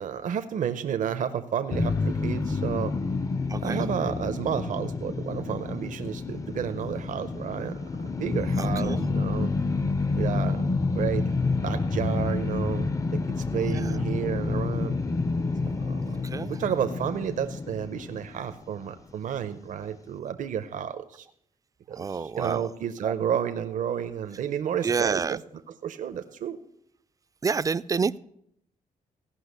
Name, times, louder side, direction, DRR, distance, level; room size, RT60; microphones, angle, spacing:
voice 1, 0.0-2.9 3.6-9.5 10.2-10.6 10.9-11.3 11.6-12.9 13.3-15.0 15.8-16.1 16.4-21.3 21.9-25.4 25.8-26.6, right 8 dB, 75° right, 8 dB, 0.7 m, -31 dB
sound 1, 1.7-18.9, left 3 dB, 25° left, 0.5 m, -29 dB
voice 2, 3.5-3.8 8.6-9.1 13.7-14.0 16.2-16.6 22.0-22.7 23.0-23.1 24.8-25.4 27.4-28.2, right 5 dB, 25° right, 16 dB, 0.4 m, -28 dB
16.0 x 5.8 x 8.1 m, 0.73 s
cardioid pair, 110°, 13 cm